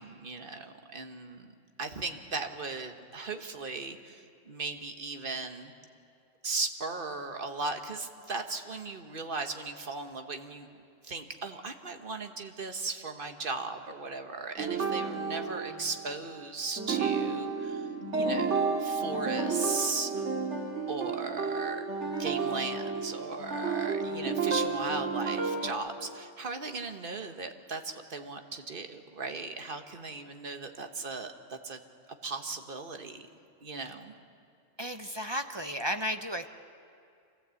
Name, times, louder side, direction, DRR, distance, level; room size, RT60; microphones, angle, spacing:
voice 1, 0.0-1.5 1.8-5.7 6.4-10.7 11.0-17.9 18.1-20.3 20.9-31.8 32.2-33.3 33.6-34.1, right 3 dB, 45° right, 6 dB, 1.4 m, -37 dB
sound 1, 14.6-16.4 16.8-25.7, right 5 dB, 65° right, 2.2 m, -31 dB
voice 2, 34.8-36.5, equal, 30° right, 7 dB, 0.5 m, -33 dB
26.0 x 15.0 x 8.3 m, 2.4 s
omnidirectional pair, 1.3 m